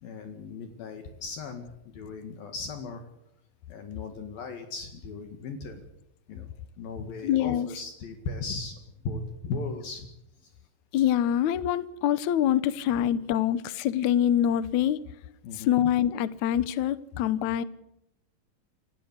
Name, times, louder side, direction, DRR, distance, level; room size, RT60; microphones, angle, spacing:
voice 1, 0.0-3.0 3.7-5.8 6.3-6.5 6.8-8.8 9.1-10.1 10.4-10.5 13.0-13.1 15.4-15.9, left 4 dB, 65° left, 3.5 m, -37 dB
voice 2, 7.2-7.7 10.9-15.0 15.6-17.6, left 10 dB, 85° left, 1.6 m, -25 dB
28.5 x 16.0 x 8.1 m
omnidirectional pair, 4.8 m